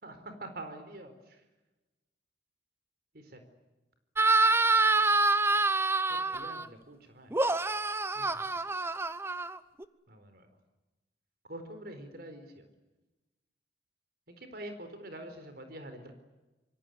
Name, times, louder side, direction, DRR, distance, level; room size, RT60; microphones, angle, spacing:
voice 1, 0.0-1.4 3.1-3.4 6.1-7.4 8.1-8.5 10.1-10.5 11.4-12.7 14.3-16.1, right 1 dB, 55° right, 8 dB, 4.3 m, -45 dB
sound 1, 4.2-6.7 7.3-9.8, right 3 dB, 15° right, 0.8 m, -26 dB
26.0 x 23.0 x 9.7 m, 1.1 s
head